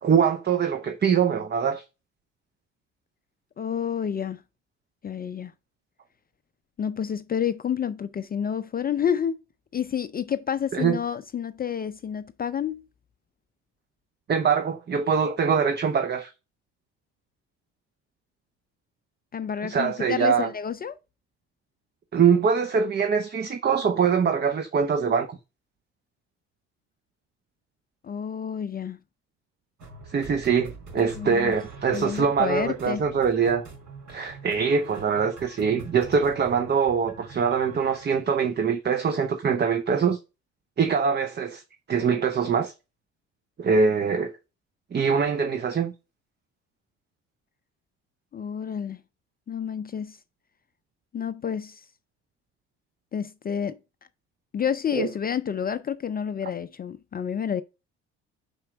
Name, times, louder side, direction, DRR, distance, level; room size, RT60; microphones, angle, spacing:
voice 1, 0.0-1.8 10.7-11.0 14.3-16.3 19.6-20.5 22.1-25.4 30.1-33.6 34.1-40.2 40.8-41.6 41.9-42.7 43.6-44.3 44.9-45.9 55.0-55.1, right 6 dB, 30° right, 0.8 m, -23 dB
voice 2, 3.6-4.4 5.0-5.5 6.8-9.4 9.7-12.9 19.3-21.0 28.0-29.0 31.0-31.5 31.9-33.1 48.3-49.0 49.5-50.2 51.1-51.9 53.1-53.8 54.5-57.6, left 8 dB, 30° left, 0.4 m, -29 dB
sound 1, 29.8-38.1, right 3 dB, 60° right, 4.1 m, -44 dB
5.2 x 4.3 x 5.9 m
hypercardioid pair, 60°, 32 cm